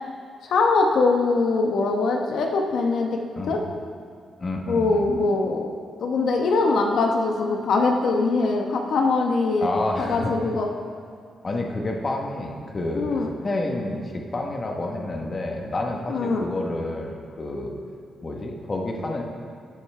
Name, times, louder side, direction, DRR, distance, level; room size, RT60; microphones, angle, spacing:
voice 1, 0.4-3.2 3.5-3.6 4.7-5.7 6.0-9.7 10.0-10.7 13.0-13.3 16.1-16.4, left 3 dB, 65° left, 1 dB, 1.0 m, -22 dB
voice 2, 4.4-5.1 9.6-10.3 11.4-17.8 18.2-19.2, left 2 dB, 25° left, 1 dB, 1.0 m, -29 dB
13.0 x 9.3 x 3.3 m, 2.3 s
wide cardioid pair, 170°, 0 cm